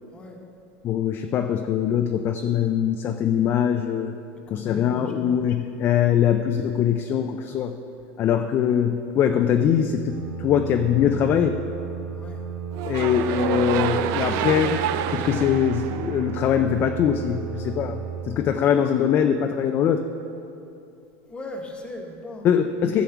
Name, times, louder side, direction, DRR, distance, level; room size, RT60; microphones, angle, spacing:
voice 1, 0.8-4.1 4.5-7.7 8.2-11.6 12.8-14.8 15.1-20.0 22.4-23.0, left 8 dB, 30° left, 6 dB, 0.4 m, -22 dB
voice 2, 4.5-5.4 12.1-12.4 21.3-22.5, left 1 dB, 15° left, 2 dB, 1.1 m, -38 dB
sound 1, 10.1-18.2, right 7 dB, 70° right, 2.2 m, -34 dB
sound 2, 12.7-16.9, right 10 dB, 50° right, 0.4 m, -28 dB
14.0 x 4.8 x 7.0 m, 2.8 s
supercardioid pair, 150°, 7 cm